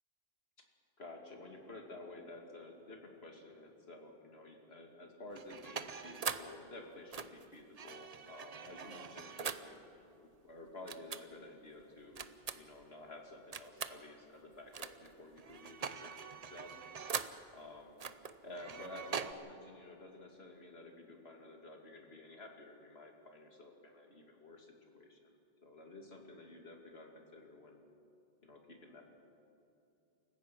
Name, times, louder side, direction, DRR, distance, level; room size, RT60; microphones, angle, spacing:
voice 1, 1.0-9.8 10.2-12.2 12.5-16.7 17.5-17.9 18.4-25.3 25.6-27.8 28.4-29.0, left 2 dB, 85° left, 2 dB, 2.7 m, -52 dB
sound 1, 5.3-6.6 7.1-9.7 10.9-11.2 12.2-12.8 13.5-14.0 14.7-15.1 15.4-17.4 18.0-19.3, right 6 dB, 45° right, 0.7 m, -42 dB
28.5 x 15.5 x 6.0 m, 2.7 s
omnidirectional pair, 1.0 m